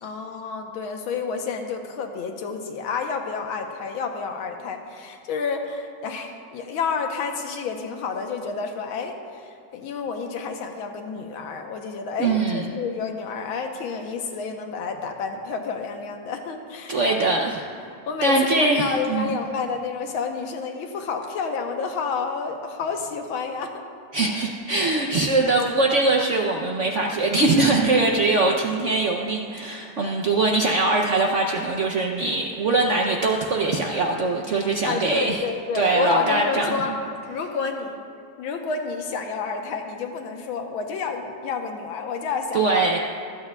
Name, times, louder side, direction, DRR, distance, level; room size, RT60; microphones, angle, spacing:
voice 1, 0.0-17.5 18.1-23.7 28.5-28.6 34.9-37.0 37.3-38.0 38.4-42.9, left 5 dB, 90° left, 4 dB, 1.7 m, -30 dB
voice 2, 12.2-12.7 16.9-17.6 18.2-19.4 24.1-35.4 35.7-36.7 42.5-43.0, right 2 dB, 85° right, 0 dB, 0.6 m, -22 dB
25.0 x 8.9 x 2.3 m, 2.4 s
omnidirectional pair, 2.2 m